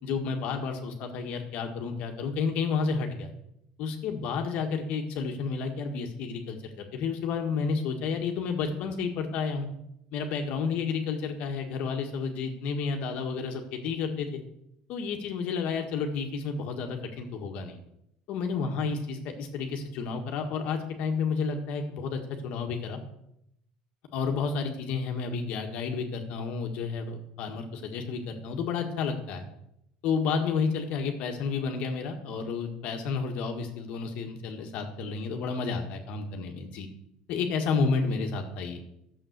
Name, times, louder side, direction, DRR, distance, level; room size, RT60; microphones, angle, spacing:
voice 1, 0.0-3.3 3.8-9.7 10.1-14.4 14.9-17.8 18.3-23.0 24.1-29.4 30.0-36.9 37.3-38.8, left 5 dB, 50° left, 3 dB, 1.7 m, -31 dB
12.5 x 7.4 x 8.1 m, 0.78 s
cardioid pair, 175°, 3 cm